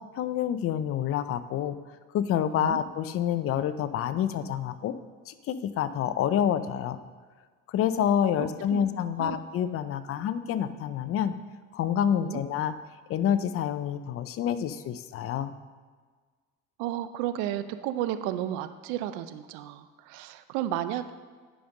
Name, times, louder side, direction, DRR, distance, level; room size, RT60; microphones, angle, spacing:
voice 1, 0.1-1.8 2.1-4.9 5.3-7.0 7.7-11.3 11.7-12.7 13.1-15.5, left 9 dB, 50° left, 12 dB, 0.6 m, -28 dB
voice 2, 8.4-8.8 9.2-9.4 12.2-12.4 16.8-21.1, right 12 dB, 85° right, 12 dB, 0.6 m, -33 dB
10.0 x 5.2 x 5.3 m, 1.5 s
cardioid pair, 115°, 29 cm